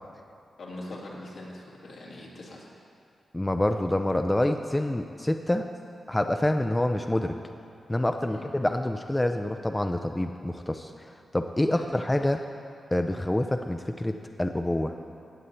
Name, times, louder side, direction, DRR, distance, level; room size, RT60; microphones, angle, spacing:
voice 1, 0.6-2.7 8.2-8.4 11.5-11.8, left 1 dB, 75° left, -4 dB, 2.4 m, -42 dB
voice 2, 3.3-5.7 6.1-7.3 7.9-11.1 11.3-12.4 12.9-14.9, left 1 dB, 15° left, 6 dB, 0.5 m, -27 dB
17.0 x 7.4 x 4.3 m, 2.5 s
cardioid pair, 55°, 0 cm